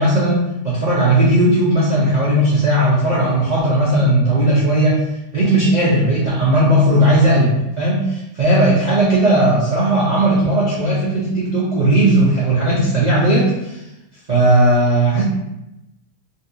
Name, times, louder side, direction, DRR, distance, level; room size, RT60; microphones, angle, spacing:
voice 1, 0.0-5.0 5.3-13.8 14.3-15.2, right 1 dB, 50° right, -9 dB, 0.5 m, -16 dB
3.9 x 2.4 x 2.7 m, 0.91 s
omnidirectional pair, 1.9 m